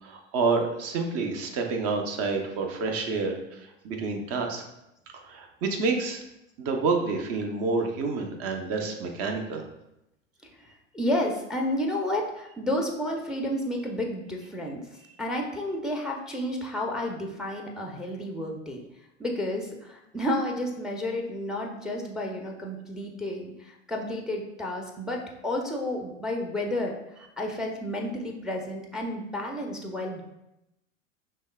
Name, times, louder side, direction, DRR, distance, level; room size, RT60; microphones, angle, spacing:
voice 1, 0.0-3.6 3.8-4.6 5.3-6.2 6.6-9.6, right 4 dB, 40° right, 3 dB, 0.8 m, -28 dB
voice 2, 10.6-14.8 15.2-18.8 19.2-30.2, left 1 dB, ahead, 1 dB, 0.6 m, -31 dB
5.3 x 3.3 x 2.2 m, 0.86 s
figure-of-eight pair, 85°, 38 cm